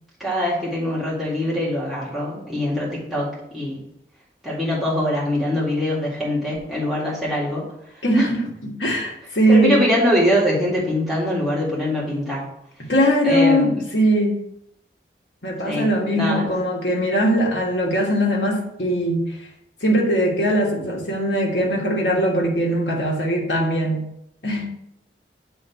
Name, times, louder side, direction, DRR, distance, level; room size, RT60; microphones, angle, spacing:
voice 1, 0.2-3.8 4.4-7.7 7.9-8.2 9.5-12.5 13.2-13.8 15.6-16.5, left 1 dB, ahead, -8 dB, 2.0 m, -23 dB
voice 2, 8.0-8.4 8.6-9.8 12.8-14.4 15.4-19.3 19.8-24.0 24.4-24.7, equal, 70° left, -2 dB, 1.6 m, -20 dB
7.7 x 3.3 x 4.5 m, 0.76 s
head